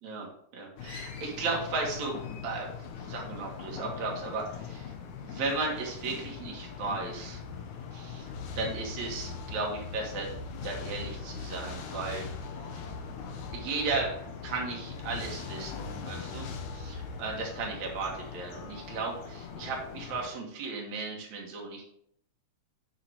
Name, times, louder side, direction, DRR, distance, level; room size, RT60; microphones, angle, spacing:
voice 1, 0.0-2.2 2.4-2.7 3.0-4.9 5.2-7.4 7.9-8.3 8.5-10.3 10.6-12.3 12.7-12.8 13.5-14.2 14.4-16.5 16.7-21.8, right 3 dB, 70° right, -1 dB, 3.1 m, -35 dB
sound 1, 0.8-20.3, left 5 dB, 80° left, 2.4 m, -41 dB
8.8 x 6.0 x 4.6 m, 0.68 s
omnidirectional pair, 3.3 m